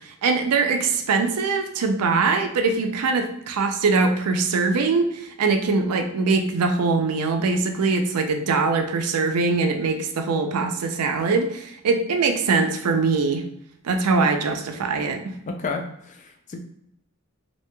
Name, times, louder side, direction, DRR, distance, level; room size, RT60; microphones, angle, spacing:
voice 1, 0.0-13.4 13.8-15.3, right 4 dB, 90° right, 5 dB, 0.4 m, -22 dB
voice 2, 15.5-16.6, left 4 dB, 35° left, 4 dB, 0.3 m, -31 dB
2.9 x 2.7 x 2.2 m, 0.75 s
head